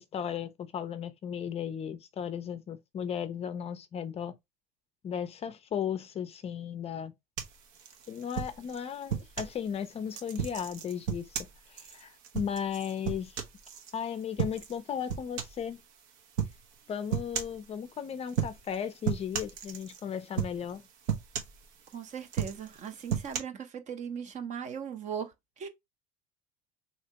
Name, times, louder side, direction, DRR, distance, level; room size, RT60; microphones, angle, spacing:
voice 1, 0.0-4.4 5.0-7.1 8.1-13.4 13.9-15.8 16.9-20.9, left 8 dB, 30° left, 0.4 m, -36 dB
sound 1, 7.4-9.6 10.1-13.9 14.4-14.8 15.1-15.7 16.4-16.6 17.1-17.6 18.3-18.8 19.0-20.0 20.4-20.8 21.1-21.9 22.3-23.4, right 8 dB, 75° right, 0.9 m, -34 dB
voice 2, 21.9-25.7, right 7 dB, 40° right, 0.7 m, -39 dB
3.3 x 2.8 x 2.8 m
supercardioid pair, 120°, 20 cm